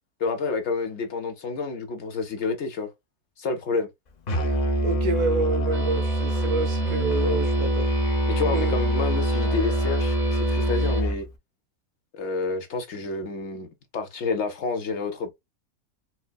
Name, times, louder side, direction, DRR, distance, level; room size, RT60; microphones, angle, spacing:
voice 1, 0.2-2.9 3.4-3.9 8.3-11.3 12.1-15.3, left 4 dB, 60° left, 0.9 m, -29 dB
Musical instrument, 4.3-11.3, right 1 dB, 80° left, 0.3 m, -24 dB
voice 2, 4.8-7.9 8.4-8.8, right 3 dB, 90° right, 1.4 m, -28 dB
sound 1, 5.7-11.0, right 2 dB, 50° right, 0.6 m, -39 dB
4.4 x 2.0 x 2.2 m
omnidirectional pair, 1.6 m